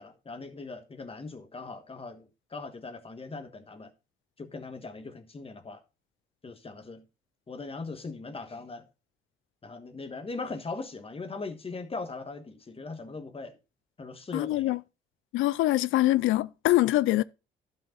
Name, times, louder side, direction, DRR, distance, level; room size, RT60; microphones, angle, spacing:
voice 1, 0.0-3.9 4.4-5.8 6.4-7.0 7.5-8.8 9.6-13.6 14.0-14.8, left 3 dB, 30° left, 1.4 m, -40 dB
voice 2, 14.3-14.8 15.3-17.2, left 16 dB, 85° left, 0.4 m, -24 dB
11.5 x 5.5 x 3.9 m
cardioid pair, 90°, 20 cm